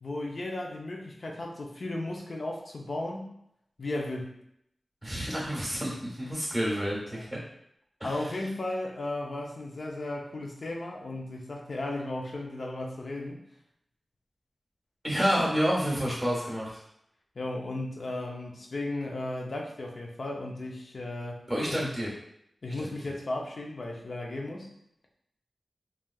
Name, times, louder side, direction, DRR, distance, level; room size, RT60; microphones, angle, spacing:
voice 1, 0.0-3.3 3.8-4.3 7.1-7.3 8.0-13.4 17.4-21.9 22.6-24.7, left 2 dB, 55° left, 0 dB, 0.5 m, -35 dB
voice 2, 5.0-7.4 8.0-8.2 15.0-16.8 21.5-22.1 22.8-22.9, equal, ahead, -4 dB, 1.2 m, -29 dB
3.2 x 2.3 x 2.3 m, 0.75 s
wide cardioid pair, 110°, 0 cm